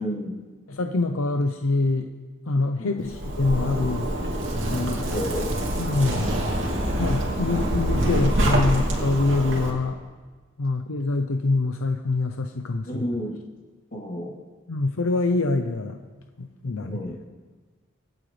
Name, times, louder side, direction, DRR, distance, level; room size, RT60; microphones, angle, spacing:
voice 1, 0.0-0.5 2.8-3.0 5.1-5.5 12.9-13.3 13.9-14.3 16.8-17.2, equal, 45° left, -5 dB, 3.3 m, -31 dB
voice 2, 0.7-2.1 2.5-4.1 4.7-5.0 5.8-6.3 7.0-10.0 10.6-13.0 14.7-16.0 16.4-17.0, left 3 dB, 80° left, 6 dB, 0.7 m, -25 dB
Zipper (clothing), 3.0-9.7, right 1 dB, 60° right, 2.7 m, -25 dB
25.0 x 8.9 x 3.3 m, 1.4 s
head